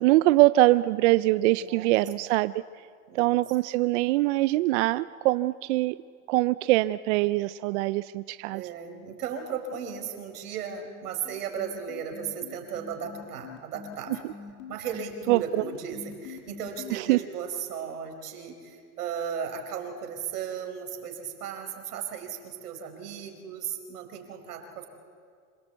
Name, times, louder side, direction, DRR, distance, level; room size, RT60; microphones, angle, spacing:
voice 1, 0.0-2.5 3.1-5.9 6.3-8.6 15.3-15.4 16.9-17.2, right 18 dB, 55° right, 15 dB, 0.5 m, -23 dB
voice 2, 1.6-1.9 3.1-3.4 8.5-14.3 14.7-24.9, right 7 dB, 85° right, 4 dB, 4.8 m, -36 dB
sound 1, 10.6-16.9, left 6 dB, 50° left, 3.1 m, -44 dB
27.0 x 18.5 x 8.1 m, 2.2 s
supercardioid pair, 140°, 44 cm